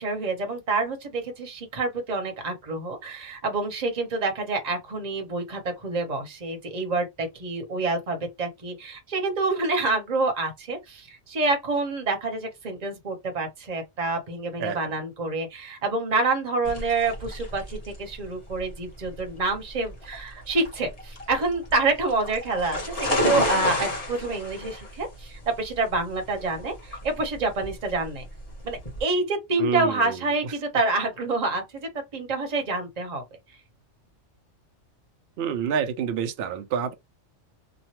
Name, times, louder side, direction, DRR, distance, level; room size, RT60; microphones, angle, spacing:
voice 1, 0.0-28.3 28.6-33.2, right 3 dB, 35° right, 1.0 m, -27 dB
sound 1, 16.6-29.0, left 1 dB, 30° left, 1.1 m, -32 dB
voice 2, 29.6-30.2 35.4-36.9, right 7 dB, 60° right, 0.7 m, -27 dB
3.0 x 2.2 x 2.8 m
omnidirectional pair, 1.3 m